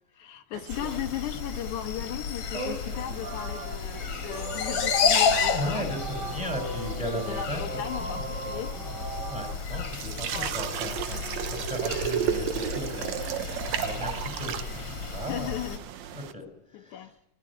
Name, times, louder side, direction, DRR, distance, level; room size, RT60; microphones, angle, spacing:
voice 1, 0.1-5.9 6.2-6.8 7.1-8.7 10.3-10.6 15.3-15.8 16.7-17.1, left 12 dB, 80° left, 6 dB, 2.3 m, -37 dB
sound 1, 0.5-16.3, right 9 dB, 70° right, 2.1 m, -36 dB
sound 2, 0.7-15.8, left 6 dB, 50° left, 2.5 m, -32 dB
voice 2, 2.5-3.2 5.5-7.6 8.0-8.3 8.8-15.6 16.1-17.1, equal, 10° right, 5 dB, 5.7 m, -36 dB
Singing, 3.1-9.5, right 4 dB, 45° right, 1.5 m, -39 dB
23.0 x 17.0 x 8.6 m, 0.94 s
omnidirectional pair, 3.5 m